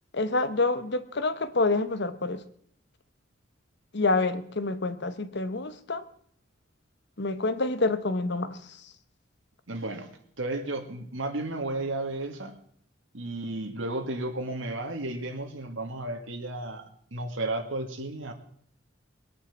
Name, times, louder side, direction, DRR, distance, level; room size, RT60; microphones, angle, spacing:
voice 1, 0.1-2.4 3.9-6.0 7.2-8.6, left 3 dB, 60° left, 12 dB, 1.1 m, -27 dB
voice 2, 9.7-10.1 10.4-12.5 13.1-16.9 17.1-18.3, right 2 dB, 85° right, 4 dB, 2.2 m, -33 dB
21.0 x 8.8 x 7.3 m, 0.63 s
head